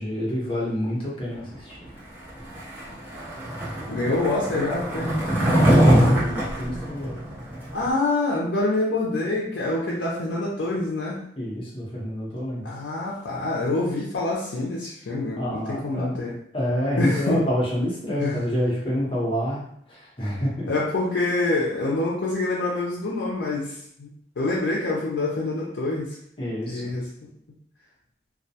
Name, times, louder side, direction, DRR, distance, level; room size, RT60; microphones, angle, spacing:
voice 1, 0.0-1.9 5.5-7.2 11.4-12.7 15.4-16.2 16.5-20.7 26.4-26.9, equal, 30° left, -5 dB, 0.8 m, -28 dB
Skateboard, 2.4-7.9, equal, 10° right, 0.6 m, -22 dB
voice 2, 3.9-5.1 7.7-11.2 12.6-16.4 17.0-17.4 18.2-18.4 20.7-26.2 26.7-27.3, left 2 dB, 80° left, -4 dB, 0.5 m, -26 dB
2.3 x 2.2 x 2.7 m, 0.67 s
head